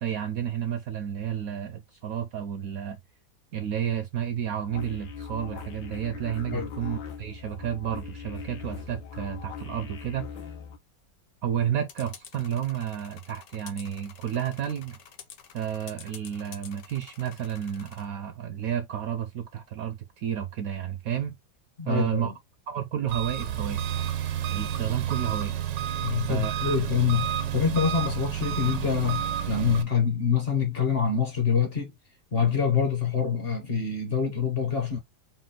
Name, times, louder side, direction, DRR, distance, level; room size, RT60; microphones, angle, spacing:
voice 1, 0.0-3.0 3.5-10.3 11.4-15.0 15.5-21.3 21.8-22.3 22.7-23.9 24.5-25.6 26.3-26.8, right 9 dB, 70° right, 0.8 m, -31 dB
sound 1, 4.7-10.8, left 7 dB, 85° left, 1.4 m, -40 dB
sound 2, 11.9-18.0, left 8 dB, 65° left, 1.2 m, -48 dB
voice 2, 21.8-22.3 26.0-31.9 32.3-35.0, left 6 dB, 45° left, 0.8 m, -26 dB
Engine, 23.1-29.8, right 10 dB, 90° right, 1.4 m, -30 dB
4.1 x 2.2 x 3.8 m
omnidirectional pair, 1.9 m